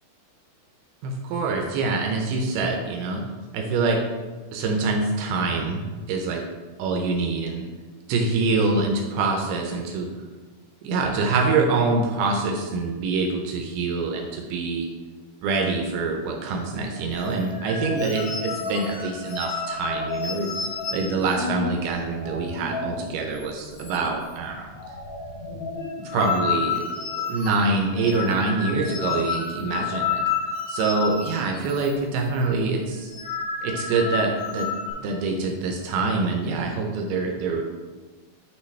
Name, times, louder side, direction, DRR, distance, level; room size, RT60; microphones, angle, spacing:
voice 1, 1.0-3.2 3.5-4.0 4.5-6.4 6.8-7.6 8.1-10.1 10.8-14.9 15.4-20.5 20.9-24.7 26.0-30.2 30.7-33.1 33.6-34.7 35.0-37.6, right 3 dB, 80° right, 2 dB, 2.6 m, -25 dB
sound 1, 17.1-23.1 23.4-23.5 23.8-24.3 24.6-32.0 32.2-32.5 32.9-34.9, left 5 dB, 65° left, 1.8 m, -31 dB
8.8 x 5.9 x 3.3 m, 1.3 s
omnidirectional pair, 4.6 m